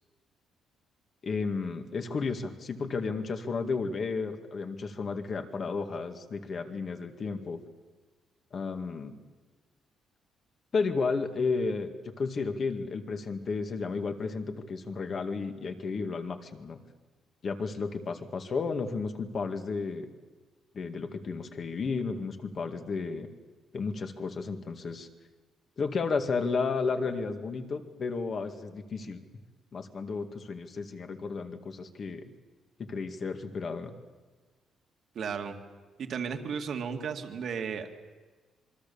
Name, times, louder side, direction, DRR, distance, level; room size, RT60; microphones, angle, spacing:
voice 1, 1.2-7.6 8.5-9.1 10.7-16.8 17.4-20.1 20.7-23.3 23.7-25.1 25.8-29.2 29.7-32.3 32.8-33.9, left 4 dB, 40° left, 6 dB, 2.1 m, -33 dB
voice 2, 35.2-35.6 36.0-37.9, right 6 dB, 55° right, 5 dB, 2.2 m, -34 dB
26.5 x 23.5 x 7.1 m, 1.3 s
cardioid pair, 135°, 0 cm